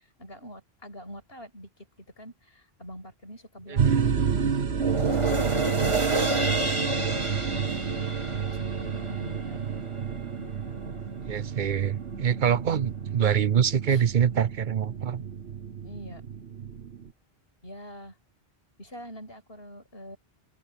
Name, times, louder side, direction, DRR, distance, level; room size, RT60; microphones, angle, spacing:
voice 1, 0.2-1.7 2.2-4.7 5.4-8.2 8.5-9.7 10.4-11.0 12.4-12.8 13.9-14.0 15.8-16.2 17.6-18.2 18.8-20.2, equal, 65° left, 8.1 m, -43 dB
voice 2, 3.7-4.2 11.2-15.2, right 8 dB, 55° right, 0.7 m, -25 dB
sound 1, 3.8-17.1, right 6 dB, 75° right, 1.4 m, -30 dB
sound 2, 4.7-11.3 11.7-11.8, right 2 dB, 30° right, 2.0 m, -30 dB
open air
omnidirectional pair, 1.1 m